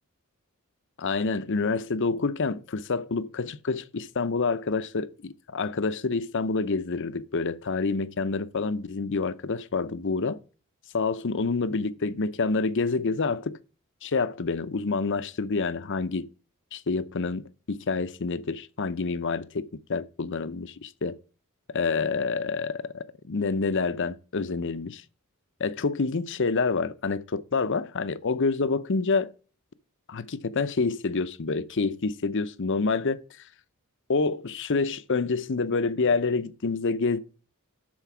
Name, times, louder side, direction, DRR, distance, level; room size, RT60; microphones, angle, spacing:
voice 1, 1.0-10.4 10.9-13.6 14.0-16.3 16.7-17.4 17.7-21.2 21.7-25.0 25.6-29.3 30.1-33.2 34.1-37.2, left 4 dB, 60° left, 0.7 m, -27 dB
12.5 x 4.6 x 6.1 m
head